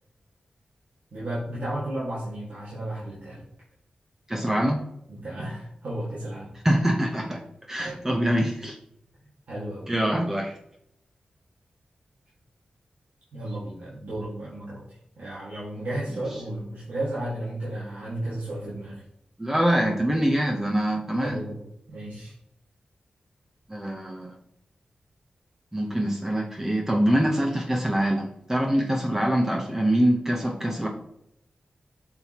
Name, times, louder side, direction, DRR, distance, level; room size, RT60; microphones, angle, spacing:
voice 1, 1.1-3.5 5.1-6.6 7.8-8.1 9.5-9.9 13.3-19.0 21.2-21.6 21.9-22.3, right 1 dB, 80° right, -8 dB, 1.9 m, -33 dB
voice 2, 4.3-4.8 6.6-7.4 7.7-8.8 9.9-10.6 19.4-21.4 23.7-24.3 25.7-30.9, right 1 dB, 15° right, 1 dB, 0.9 m, -24 dB
7.6 x 5.8 x 3.0 m, 0.76 s
wide cardioid pair, 90°, 3 cm